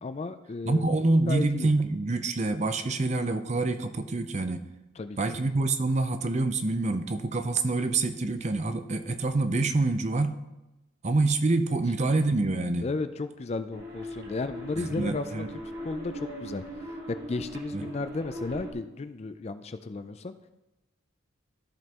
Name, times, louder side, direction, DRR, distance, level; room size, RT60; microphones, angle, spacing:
voice 1, 0.0-0.9 1.3-1.7 5.0-5.4 12.8-15.5 15.8-16.6 17.3-20.3, left 3 dB, 30° left, 11 dB, 0.4 m, -34 dB
voice 2, 0.6-4.6 5.2-10.4 11.0-12.9 14.8-15.5 17.7-17.9, right 2 dB, 35° right, 8 dB, 0.6 m, -26 dB
sound 1, 13.7-18.7, right 1 dB, 50° right, 1.9 m, -40 dB
14.0 x 5.3 x 3.0 m, 0.98 s
head